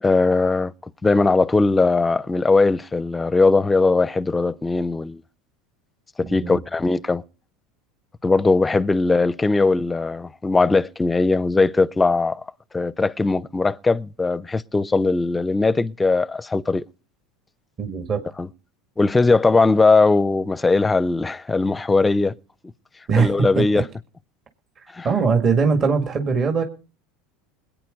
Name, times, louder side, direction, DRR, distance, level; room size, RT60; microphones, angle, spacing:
voice 1, 0.0-0.7 1.0-5.2 6.2-7.2 8.2-12.4 12.7-16.9 18.4-18.5 19.0-22.3 23.2-23.8 24.9-25.1, left 3 dB, 15° left, 0.6 m, -19 dB
voice 2, 6.2-6.6 17.8-18.2 23.1-23.8 24.8-26.6, right 5 dB, 40° right, 1.9 m, -21 dB
20.5 x 9.0 x 5.2 m
hypercardioid pair, 95°, 0 cm